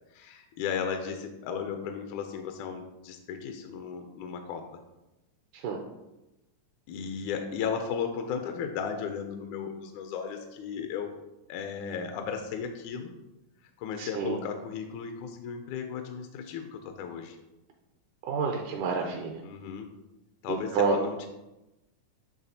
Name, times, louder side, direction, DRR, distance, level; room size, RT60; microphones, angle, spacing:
voice 1, 0.1-4.7 6.9-11.1 11.5-13.1 13.8-17.4 19.4-19.9 20.4-21.3, left 7 dB, 80° left, 6 dB, 1.8 m, -35 dB
voice 2, 14.0-14.4 18.2-19.4 20.5-21.0, right 6 dB, 80° right, 2 dB, 1.9 m, -29 dB
10.5 x 3.5 x 2.7 m, 0.97 s
omnidirectional pair, 3.8 m